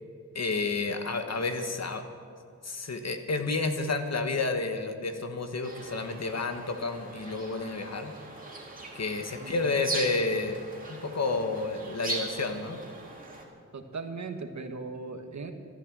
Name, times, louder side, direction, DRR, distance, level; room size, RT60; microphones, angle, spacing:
voice 1, 0.3-2.0 2.6-8.1 8.9-10.6 10.9-12.8, left 3 dB, 55° left, 6 dB, 1.4 m, -30 dB
sound 1, 5.6-13.4, right 2 dB, 25° right, 2.6 m, -40 dB
voice 2, 9.4-9.7 13.7-15.5, right 4 dB, 60° right, 6 dB, 1.4 m, -38 dB
13.5 x 13.0 x 7.5 m, 2.3 s
wide cardioid pair, 125°, 31 cm